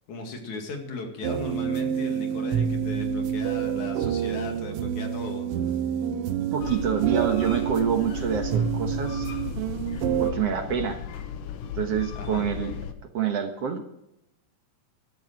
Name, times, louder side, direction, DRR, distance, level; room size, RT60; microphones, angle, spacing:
voice 1, 0.1-5.8 12.2-12.5, left 3 dB, 70° left, 3 dB, 3.6 m, -37 dB
sound 1, 1.2-10.3, right 9 dB, 90° right, 1.2 m, -28 dB
voice 2, 6.5-9.3 10.2-11.0 11.8-12.8 13.1-14.0, right 8 dB, 60° right, 5 dB, 2.0 m, -27 dB
sound 2, 6.6-12.9, left 8 dB, 85° left, 2.7 m, -36 dB
14.5 x 13.0 x 4.7 m, 0.83 s
omnidirectional pair, 3.6 m